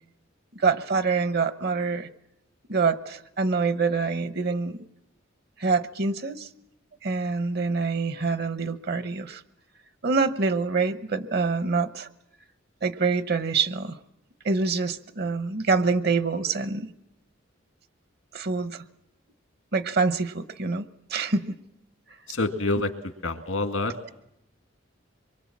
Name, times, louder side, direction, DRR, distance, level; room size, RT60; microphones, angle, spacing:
voice 1, 0.5-2.1 2.7-4.8 5.6-6.5 7.0-9.4 10.0-12.1 12.8-14.0 14.4-16.9 18.3-18.8 19.7-20.8 21.1-21.5, right 4 dB, 55° right, 1.0 m, -25 dB
voice 2, 22.3-23.9, left 2 dB, 85° left, 2.1 m, -27 dB
25.0 x 23.5 x 7.4 m
head